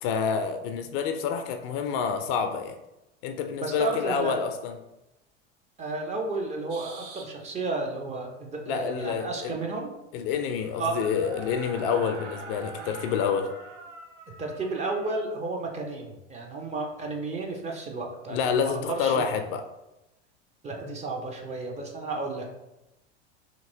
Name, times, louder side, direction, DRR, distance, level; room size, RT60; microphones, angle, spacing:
voice 1, 0.0-2.8 3.2-4.8 8.7-9.6 10.1-13.5 18.3-19.6, left 6 dB, 50° left, 7 dB, 0.4 m, -28 dB
voice 2, 3.6-4.4 5.8-9.9 10.8-11.0 12.8-12.9 14.4-19.2 20.6-22.5, right 3 dB, 20° right, 1 dB, 0.5 m, -32 dB
sound 1, 6.7-7.3 10.2-15.2, right 4 dB, 75° right, 0.6 m, -43 dB
2.9 x 2.8 x 2.6 m, 0.94 s
hypercardioid pair, 80°, 35 cm